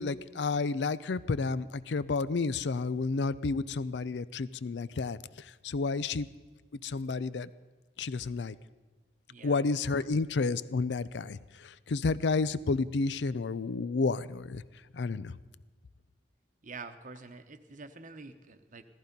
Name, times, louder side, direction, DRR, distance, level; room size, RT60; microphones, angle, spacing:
voice 1, 0.0-6.3 6.8-7.5 8.0-8.6 9.4-14.6 14.9-15.4, left 4 dB, 75° left, 18 dB, 0.5 m, -31 dB
voice 2, 9.3-10.1 16.6-18.8, right 4 dB, 45° right, 9 dB, 0.9 m, -47 dB
16.0 x 14.0 x 5.3 m, 1.4 s
head